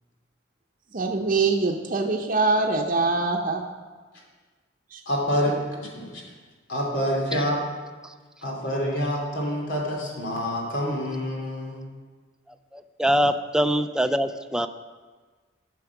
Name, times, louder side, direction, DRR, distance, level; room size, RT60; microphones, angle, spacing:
voice 1, 0.9-3.6 4.9-5.0, right 3 dB, 45° right, -1 dB, 0.7 m, -23 dB
voice 2, 5.1-6.2 6.7-7.6 8.4-11.8, equal, 85° left, -2 dB, 2.8 m, -27 dB
voice 3, 12.7-14.7, equal, 5° right, 9 dB, 0.4 m, -23 dB
14.0 x 6.2 x 5.9 m, 1.4 s
head